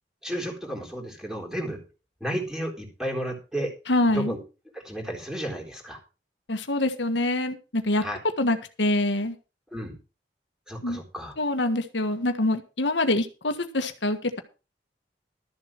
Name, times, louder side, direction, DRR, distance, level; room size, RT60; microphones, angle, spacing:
voice 1, 0.2-1.8 2.2-3.7 4.0-4.4 4.7-6.0 8.0-8.2 9.7-10.0 10.7-11.3, right 1 dB, 5° right, 1 dB, 3.8 m, -32 dB
voice 2, 3.9-4.3 6.5-8.0 8.4-9.3 10.8-11.0 11.4-14.4, left 1 dB, 80° left, 8 dB, 1.6 m, -25 dB
13.0 x 7.5 x 6.0 m, 0.32 s
head